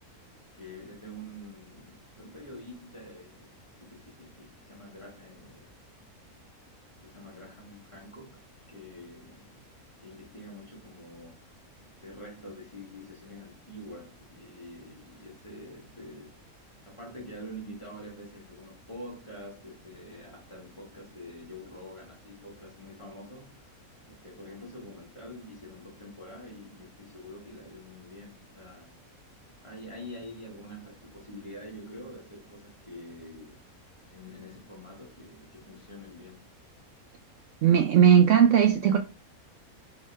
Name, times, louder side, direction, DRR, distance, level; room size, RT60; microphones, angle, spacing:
voice 1, 0.5-5.8 7.0-9.7 10.0-11.5 12.0-16.5 16.8-23.7 24.1-28.9 29.6-33.6 34.1-36.5, equal, 20° left, 1.2 m, -46 dB
voice 2, 37.6-39.0, right 8 dB, 70° right, 0.8 m, -18 dB
3.6 x 3.5 x 3.2 m
omnidirectional pair, 1.6 m